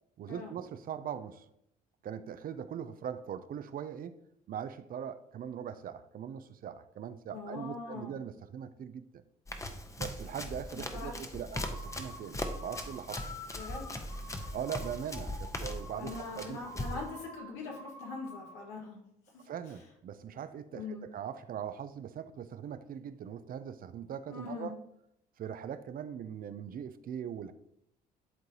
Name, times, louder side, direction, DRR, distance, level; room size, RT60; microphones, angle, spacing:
voice 1, 0.2-1.5 2.0-4.2 4.5-9.1 10.0-13.2 14.5-16.8 19.5-24.8 25.4-27.5, right 8 dB, 50° right, 12 dB, 0.5 m, -41 dB
voice 2, 7.3-8.2 10.9-11.4 13.5-14.0 16.0-19.0 19.3-19.5 20.7-21.1 24.3-24.8, left 3 dB, 80° left, -2 dB, 1.9 m, -42 dB
Run, 9.5-17.1, left 1 dB, 15° left, 0.9 m, -40 dB
sound 1, 11.5-18.7, left 1 dB, 50° left, 2.2 m, -48 dB
10.5 x 3.8 x 2.8 m, 0.77 s
supercardioid pair, 65°, 19 cm